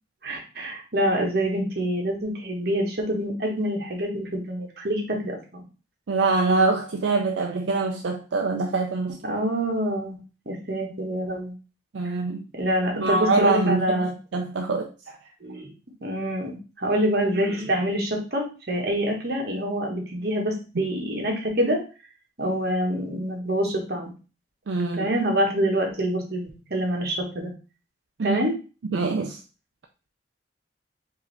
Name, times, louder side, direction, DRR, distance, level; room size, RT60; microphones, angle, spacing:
voice 1, 0.2-5.6 9.2-10.2 10.4-11.5 12.5-14.1 15.4-15.7 16.0-21.8 22.4-24.1 24.9-27.5 28.2-28.5, equal, 55° right, 1.4 m, -26 dB
voice 2, 6.1-9.2 11.9-12.4 12.9-14.9 24.7-25.1 28.2-28.4 28.9-29.4, right 3 dB, 80° right, 0.5 m, -24 dB
4.7 x 2.8 x 3.3 m
head